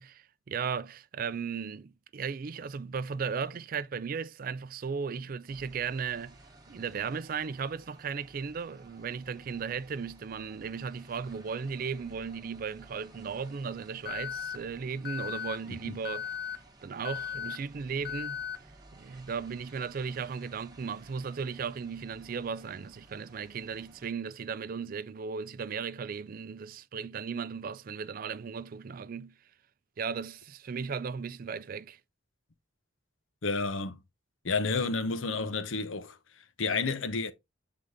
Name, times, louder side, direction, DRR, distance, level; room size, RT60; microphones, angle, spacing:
voice 1, 0.0-6.4 6.7-16.3 16.8-18.4 19.0-29.3 30.0-32.0, right 6 dB, 45° right, 0.4 m, -36 dB
sound 1, 5.5-24.1, right 2 dB, 20° right, 1.1 m, -56 dB
Alarm, 14.1-14.6 15.1-15.6 16.1-16.6 17.1-17.6 18.1-18.6, left 8 dB, 55° left, 0.9 m, -36 dB
voice 2, 33.4-34.0 34.4-36.2 36.6-37.3, left 4 dB, 90° left, 0.9 m, -30 dB
7.9 x 3.8 x 3.6 m
head